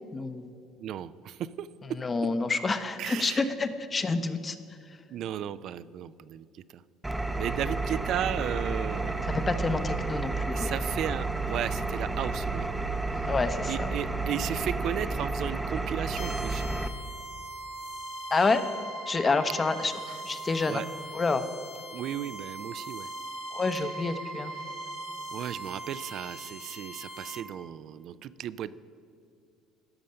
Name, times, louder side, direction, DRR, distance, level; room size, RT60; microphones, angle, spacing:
voice 1, 0.1-0.4 2.0-4.6 9.3-10.7 13.3-13.9 18.3-18.6 19.1-20.8 21.1-21.4 23.5-24.5, left 3 dB, 30° left, 10 dB, 0.7 m, -28 dB
voice 2, 0.8-1.7 3.0-3.5 5.1-6.5 7.4-9.3 10.5-12.7 13.7-16.7 20.7-20.9 21.9-23.1 23.7-23.8 25.3-28.8, right 10 dB, 60° right, 16 dB, 0.3 m, -35 dB
Engine, 7.0-16.9, right 3 dB, 10° right, 0.6 m, -31 dB
sound 1, 16.2-27.4, right 1 dB, 80° left, 1.3 m, -40 dB
13.0 x 5.2 x 5.6 m, 2.6 s
supercardioid pair, 75°, 0 cm